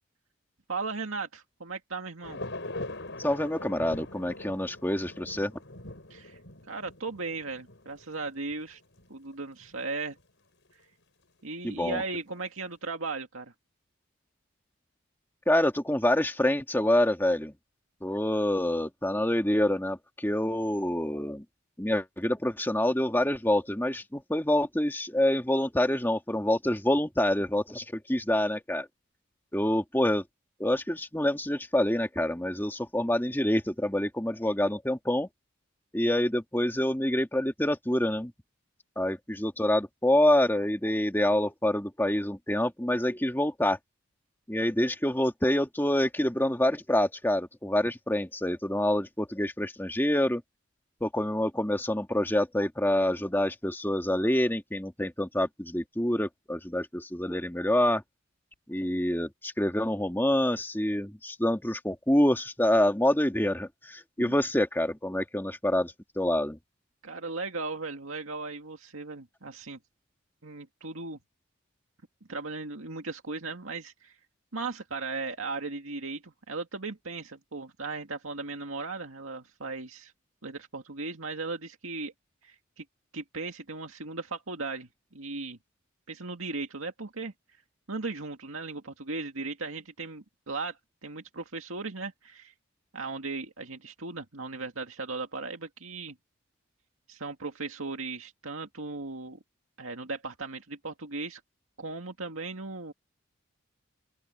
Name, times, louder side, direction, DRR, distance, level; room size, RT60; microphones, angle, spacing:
voice 1, 0.7-2.4 6.1-6.4 6.7-8.8 9.1-10.2 11.4-13.5 64.2-64.3 67.0-69.8 70.4-71.2 72.3-74.1 74.5-80.1 80.4-82.1 82.4-82.8 83.1-84.9 85.1-85.6 86.1-87.3 87.9-92.5 92.9-96.1 97.1-99.4 99.8-101.4 101.8-102.9, right 3 dB, 80° right, 2.1 m, -37 dB
sound 1, 2.2-9.1 9.3-9.4 9.6-9.8 10.7-10.8, left 2 dB, 60° left, 7.7 m, -42 dB
voice 2, 3.2-5.5 11.6-12.0 15.5-17.5 18.0-21.4 21.8-28.9 29.5-30.2 30.6-35.3 35.9-38.3 39.0-43.8 44.5-50.4 51.0-58.0 58.7-66.6, left 1 dB, 10° left, 2.1 m, -27 dB
open air
head